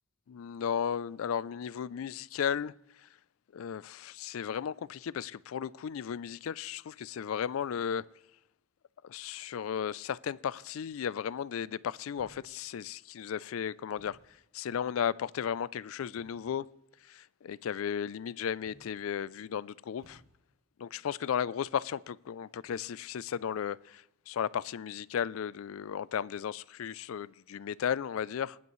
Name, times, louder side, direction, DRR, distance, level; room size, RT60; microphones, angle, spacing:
voice 1, 0.3-2.7 3.0-3.1 3.5-8.0 9.0-14.2 14.5-16.7 17.1-20.2 20.8-28.6, left 8 dB, 85° left, 0.4 m, -35 dB
sound 1, 12.2-13.0 13.8-14.5 16.1-16.6 18.6-19.2 20.0-20.7, equal, 80° right, 5.2 m, -62 dB
20.0 x 9.6 x 3.1 m
head